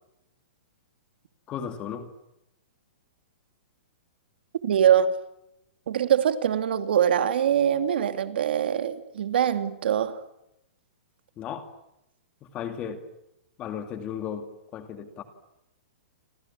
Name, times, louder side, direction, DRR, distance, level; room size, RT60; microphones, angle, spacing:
voice 1, 1.5-2.1 11.4-11.8 12.4-13.1 13.6-15.2, left 8 dB, 15° left, 2.3 m, -35 dB
voice 2, 4.6-5.1 5.9-10.2, right 9 dB, 55° right, 2.7 m, -23 dB
29.5 x 25.5 x 7.4 m
hypercardioid pair, 180°, 6 cm